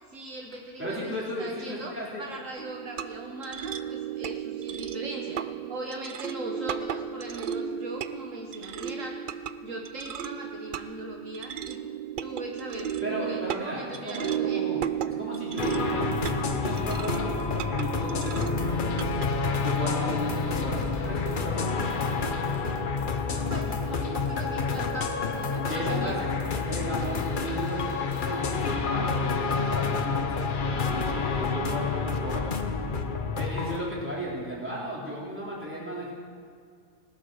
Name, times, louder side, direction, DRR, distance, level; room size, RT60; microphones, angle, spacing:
voice 1, 0.1-1.1 1.4-1.9 2.2-5.4 5.7-9.2 9.6-11.8 12.2-14.6 23.2-26.2, right 2 dB, 65° right, 1 dB, 1.6 m, -39 dB
voice 2, 0.8-2.2 13.0-14.8 15.0-16.1 16.5-18.9 19.6-21.7 25.7-26.3 26.7-32.5 33.3-36.1, equal, 10° right, -6 dB, 3.6 m, -34 dB
sound 1, 2.6-19.3, right 9 dB, 85° right, 0.4 m, -34 dB
sound 2, 15.6-33.8, left 4 dB, 40° left, 0.9 m, -29 dB
19.0 x 8.7 x 6.4 m, 2.1 s
omnidirectional pair, 1.5 m